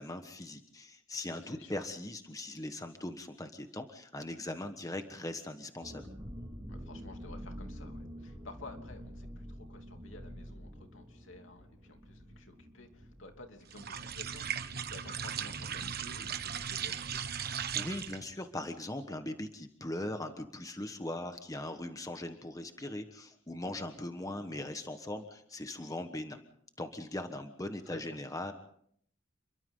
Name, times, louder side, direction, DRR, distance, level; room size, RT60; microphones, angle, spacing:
voice 1, 0.0-6.1 17.7-26.4 26.8-28.5, left 1 dB, 15° left, 7 dB, 1.3 m, -40 dB
voice 2, 1.4-1.9 6.7-17.2 27.8-28.2, left 2 dB, 75° left, 4 dB, 3.0 m, -52 dB
sound 1, 5.8-15.2 15.4-15.5 15.9-16.2, equal, 20° right, 4.2 m, -47 dB
sound 2, 13.7-18.3, right 8 dB, 50° right, 1.2 m, -37 dB
29.0 x 23.0 x 3.9 m, 0.64 s
head